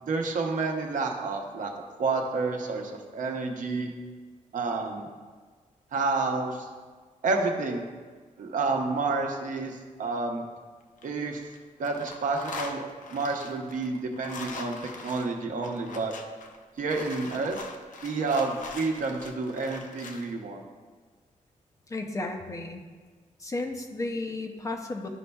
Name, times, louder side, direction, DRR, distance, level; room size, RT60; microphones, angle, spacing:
voice 1, 0.0-1.7 2.0-3.9 4.5-5.1 5.9-6.7 7.2-7.9 8.4-10.4 11.0-11.4 11.8-16.2 16.8-17.6 18.0-20.6, right 3 dB, 70° right, 2 dB, 0.8 m, -29 dB
sound 1, 10.8-11.6 11.8-20.3, left 4 dB, 65° left, 0.7 m, -42 dB
voice 2, 21.9-22.8 23.4-25.1, left 2 dB, 25° left, 4 dB, 0.5 m, -33 dB
11.5 x 5.3 x 2.3 m, 1.4 s
wide cardioid pair, 175°, 14 cm